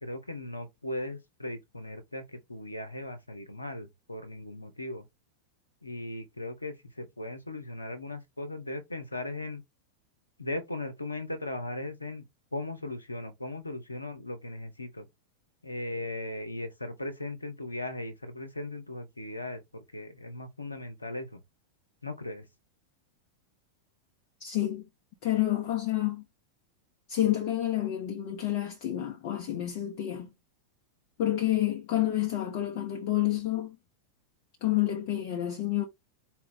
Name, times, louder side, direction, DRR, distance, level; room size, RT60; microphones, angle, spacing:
voice 1, 0.0-5.1 5.8-9.6 10.4-15.1 15.6-21.4 22.0-22.5, left 2 dB, 85° left, 0.8 m, -38 dB
voice 2, 24.4-24.8 25.2-26.2 27.1-30.3 31.2-33.8 34.6-35.9, left 13 dB, 45° left, 0.8 m, -29 dB
4.4 x 2.3 x 3.6 m
figure-of-eight pair, 90°, 0 cm